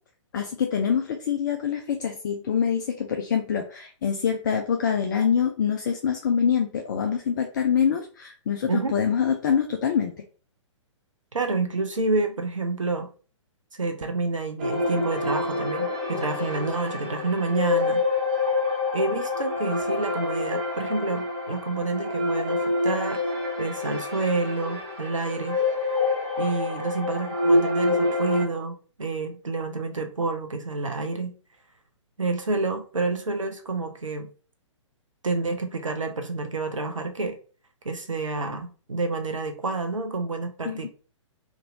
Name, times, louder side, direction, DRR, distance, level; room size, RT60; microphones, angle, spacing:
voice 1, 0.3-10.1 40.6-40.9, left 7 dB, 40° left, 5 dB, 0.4 m, -25 dB
voice 2, 11.3-13.1 13.7-18.0 18.9-23.2 23.6-25.6 26.4-31.3 32.2-34.3 35.2-37.4 37.8-40.9, right 3 dB, 80° right, 7 dB, 0.5 m, -28 dB
sound 1, 14.6-28.4, left 2 dB, 30° right, 0.9 m, -27 dB
2.9 x 2.6 x 2.5 m, 0.39 s
figure-of-eight pair, 120°, 16 cm